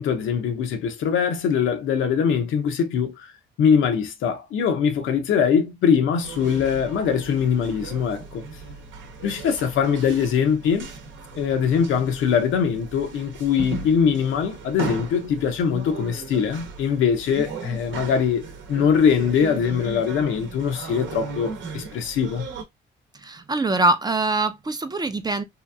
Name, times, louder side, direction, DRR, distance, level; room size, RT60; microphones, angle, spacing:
voice 1, 0.0-3.3 3.6-8.4 9.2-10.9 11.4-22.5, left 7 dB, 80° left, 0.7 m, -22 dB
sound 1, 6.2-22.6, right 4 dB, 70° right, 0.8 m, -37 dB
voice 2, 23.2-25.4, right 2 dB, 20° right, 0.4 m, -23 dB
2.9 x 2.5 x 2.3 m
cardioid pair, 90°, 20 cm